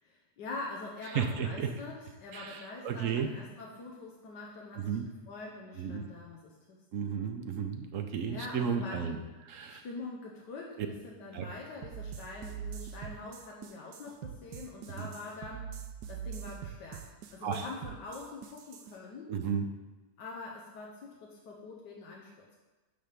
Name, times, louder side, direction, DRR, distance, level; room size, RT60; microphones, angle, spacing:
voice 1, 0.0-4.9 5.3-6.8 8.3-9.1 9.7-15.7 16.1-19.3 20.2-22.6, left 3 dB, 85° left, -2 dB, 1.6 m, -44 dB
voice 2, 1.0-1.7 2.3-3.3 4.7-5.1 5.8-6.1 6.9-9.2 9.4-9.8 10.8-10.9 11.3-11.5 14.9-15.1 17.4-17.7 19.3-19.7, right 7 dB, 60° right, 6 dB, 0.9 m, -33 dB
sound 1, 11.8-18.9, right 8 dB, 80° right, 1.3 m, -43 dB
10.0 x 3.5 x 6.7 m, 1.2 s
omnidirectional pair, 1.8 m